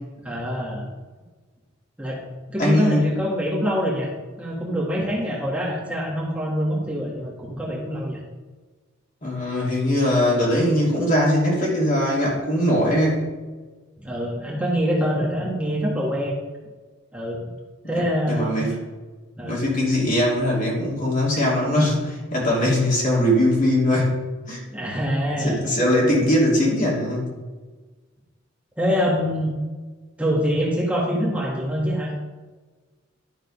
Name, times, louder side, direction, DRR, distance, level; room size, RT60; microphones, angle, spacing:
voice 1, 0.2-0.9 2.0-2.2 2.5-4.1 4.4-8.2 14.0-16.4 17.1-17.4 17.9-18.6 19.4-19.6 24.7-25.6 28.8-29.5 30.2-32.1, equal, 5° right, -5 dB, 1.7 m, -25 dB
voice 2, 2.6-3.1 9.2-13.3 17.8-18.8 19.4-24.2 24.5-24.6 25.4-27.2, left 1 dB, 40° left, -4 dB, 2.7 m, -21 dB
12.0 x 4.0 x 5.3 m, 1.3 s
head